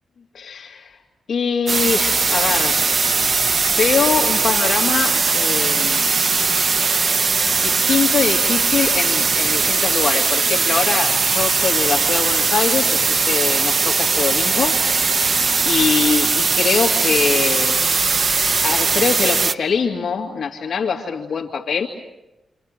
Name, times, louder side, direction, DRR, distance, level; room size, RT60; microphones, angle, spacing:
voice 1, 0.3-1.0 1.3-2.9 3.2-3.3 3.8-6.1 7.6-14.8 15.1-17.8 18.6-21.9, left 6 dB, 65° left, 1 dB, 2.5 m, -23 dB
sound 1, 1.7-19.5, right 4 dB, 40° right, 1.0 m, -19 dB
29.5 x 27.0 x 6.7 m, 0.95 s
cardioid pair, 110°, 0 cm